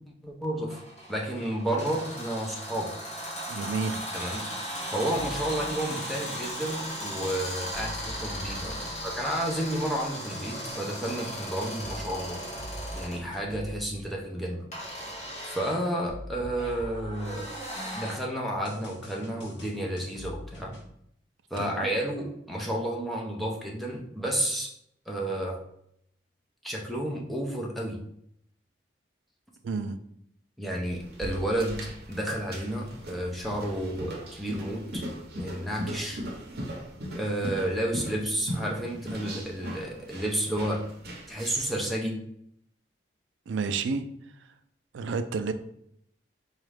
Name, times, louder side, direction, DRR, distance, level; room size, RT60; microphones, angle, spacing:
voice 1, 0.2-0.8 1.1-3.0 4.1-4.5 4.9-12.4 13.0-14.7 15.5-17.5 17.9-20.8 21.5-24.7 25.1-25.6 26.6-28.0 30.6-35.0 35.3-36.2 37.1-40.9 41.3-42.2, right 1 dB, ahead, -2 dB, 0.5 m, -31 dB
sound 1, 0.7-13.3 14.7-18.2, equal, 40° left, 0.9 m, -37 dB
voice 2, 3.5-4.0 21.6-21.9 29.6-30.0 43.5-44.0 44.9-45.5, right 4 dB, 80° right, 9 dB, 0.4 m, -30 dB
sound 2, 5.1-5.7 7.7-9.6 10.3-14.0 16.1-17.9 18.6-20.9, left 1 dB, 65° left, 0.8 m, -43 dB
sound 3, 30.9-41.8, equal, 55° right, 0.7 m, -39 dB
4.0 x 2.3 x 3.3 m, 0.71 s
head